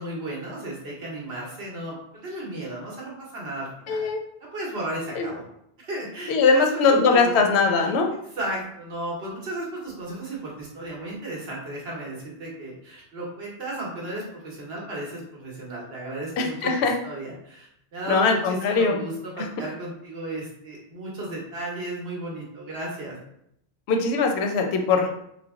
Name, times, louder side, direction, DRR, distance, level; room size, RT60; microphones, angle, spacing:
voice 1, 0.0-4.0 4.5-5.4 5.8-7.5 7.8-7.9 8.4-16.7 17.0-23.2, right 1 dB, 70° right, -3 dB, 1.2 m, -34 dB
voice 2, 3.9-4.2 5.2-5.3 6.3-8.1 16.4-16.9 18.1-19.0 19.4-19.5 23.9-25.1, left 4 dB, 80° left, 3 dB, 0.8 m, -21 dB
3.3 x 2.0 x 3.5 m, 0.75 s
omnidirectional pair, 1.1 m